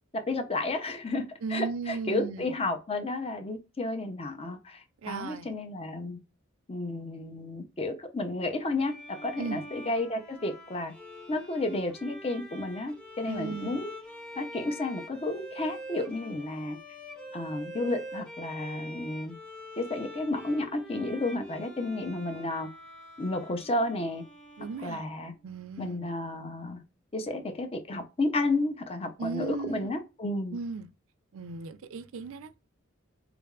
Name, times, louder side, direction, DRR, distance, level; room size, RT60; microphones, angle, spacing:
voice 1, 0.1-6.2 6.7-10.9 11.3-13.9 14.4-16.8 17.3-19.3 19.8-22.7 23.2-24.2 24.8-25.3 25.8-26.8 27.1-30.6, left 2 dB, 30° left, 0.6 m, -32 dB
voice 2, 1.4-2.5 5.0-5.5 9.4-9.6 13.3-13.8 24.6-25.1 25.4-26.1 29.2-29.9 30.5-30.9 31.3-32.6, right 4 dB, 70° right, 0.4 m, -36 dB
Bowed string instrument, 8.8-25.4, equal, 5° left, 1.3 m, -45 dB
3.5 x 3.4 x 2.3 m
head